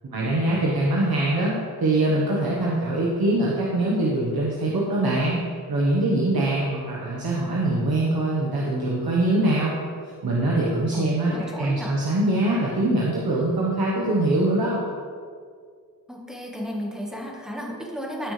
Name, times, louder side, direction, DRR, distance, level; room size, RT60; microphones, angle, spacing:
voice 1, 0.0-9.8 10.2-14.8, right 1 dB, 85° right, -5 dB, 1.3 m, -23 dB
voice 2, 10.9-11.9 16.1-18.3, equal, ahead, -2 dB, 1.6 m, -33 dB
13.0 x 6.5 x 3.4 m, 2.1 s
wide cardioid pair, 100°, 36 cm